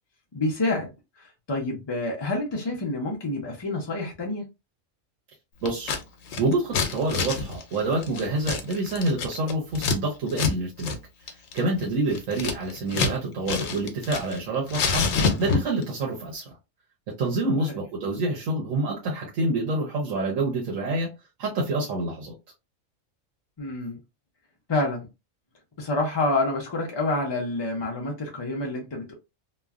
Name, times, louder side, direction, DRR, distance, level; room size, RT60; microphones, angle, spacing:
voice 1, 0.3-0.9 1.2-4.4 17.6-17.8 23.6-24.0 24.7-25.1 25.8-29.1, left 2 dB, 45° left, 0.3 m, -28 dB
voice 2, 5.6-5.9 6.4-11.0 11.5-15.1 15.4-16.5 17.2-21.1 21.4-22.3, right 2 dB, 85° right, 1.2 m, -27 dB
Scissors, 5.7-6.0 6.3-10.0 10.3-10.5 10.8-11.0 11.3-13.2 13.5-14.4 14.7-15.8, left 4 dB, 80° left, 1.0 m, -27 dB
3.1 x 2.1 x 2.3 m
omnidirectional pair, 1.3 m